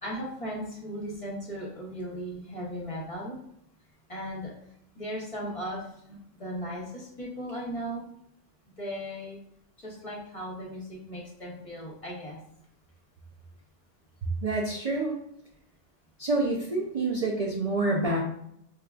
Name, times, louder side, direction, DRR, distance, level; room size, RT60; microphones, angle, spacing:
voice 1, 0.0-3.4 4.1-4.5 5.0-8.0 8.8-9.4 9.8-12.4, equal, 35° left, -3 dB, 0.7 m, -37 dB
voice 2, 14.4-15.2 16.2-18.2, right 2 dB, 70° right, -1 dB, 0.3 m, -27 dB
4.7 x 2.3 x 2.3 m, 0.75 s
omnidirectional pair, 1.3 m